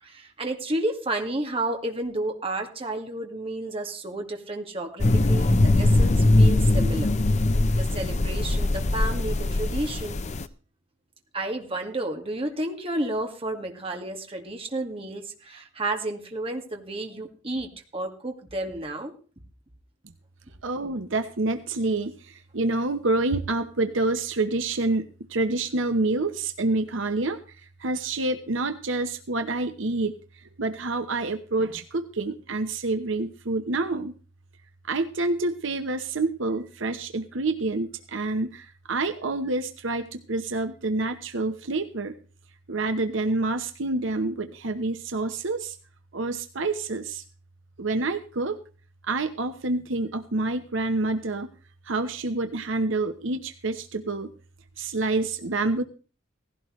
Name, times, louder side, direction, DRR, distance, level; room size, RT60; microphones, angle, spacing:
voice 1, 0.0-7.2 7.7-10.2 11.3-19.1, right 1 dB, 30° right, 3 dB, 2.1 m, -31 dB
sound 1, 5.0-10.5, left 2 dB, 35° left, 0.6 m, -21 dB
voice 2, 20.6-34.1 34.9-42.2 42.7-45.8 46.1-47.2 47.8-48.6 49.0-51.5 51.8-54.3 54.8-55.8, right 2 dB, 70° right, 8 dB, 1.0 m, -27 dB
17.5 x 16.0 x 3.2 m, 0.37 s
head